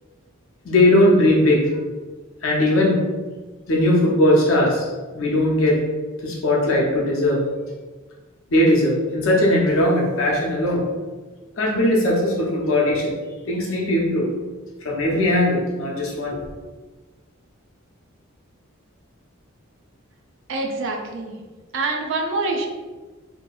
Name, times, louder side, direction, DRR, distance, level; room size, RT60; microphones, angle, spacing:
voice 1, 0.6-1.7 2.4-3.0 3.7-4.9 5.1-5.8 6.2-7.4 8.5-10.8 11.6-13.1 13.5-14.3 14.8-16.4, left 1 dB, 65° left, -3 dB, 0.7 m, -19 dB
voice 2, 20.5-21.4 21.7-22.7, right 3 dB, 60° right, 2 dB, 0.4 m, -25 dB
2.7 x 2.6 x 2.3 m, 1.3 s
head